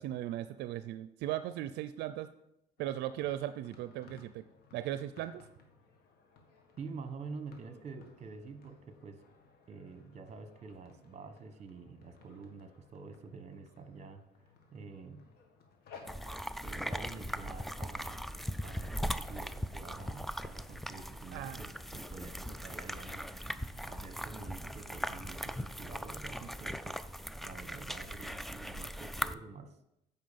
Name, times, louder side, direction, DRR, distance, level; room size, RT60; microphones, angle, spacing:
voice 1, 0.0-2.3 2.8-4.4 4.7-5.4 21.3-21.6, right 13 dB, 80° right, 11 dB, 0.5 m, -37 dB
sound 1, 2.8-21.2, left 4 dB, 70° left, 1.8 m, -60 dB
voice 2, 6.8-9.2 9.7-14.2 14.7-15.2 16.6-18.2 18.6-27.1 27.4-29.8, right 4 dB, 40° right, 9 dB, 1.3 m, -48 dB
sound 2, 16.1-29.3, equal, ahead, 0.4 m, -39 dB
9.2 x 5.6 x 7.0 m, 0.84 s
cardioid pair, 110°, 17 cm